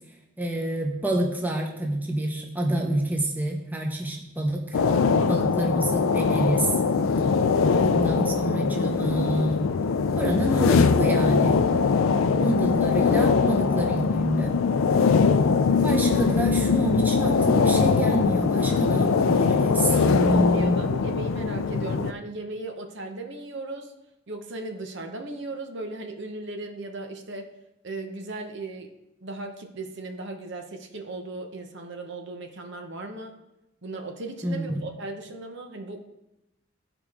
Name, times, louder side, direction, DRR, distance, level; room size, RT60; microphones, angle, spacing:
voice 1, 0.4-4.8 5.3-6.7 7.7-9.6 10.1-11.6 12.4-14.5 15.8-20.8 34.4-34.7, right 1 dB, 10° right, 0 dB, 1.0 m, -27 dB
sound 1, 4.7-22.1, left 5 dB, 80° left, 0.4 m, -22 dB
voice 2, 19.7-23.9 24.3-27.5 27.8-28.9 29.2-33.4 33.8-36.0, right 2 dB, 60° right, 4 dB, 0.9 m, -36 dB
14.5 x 5.0 x 3.6 m, 0.92 s
head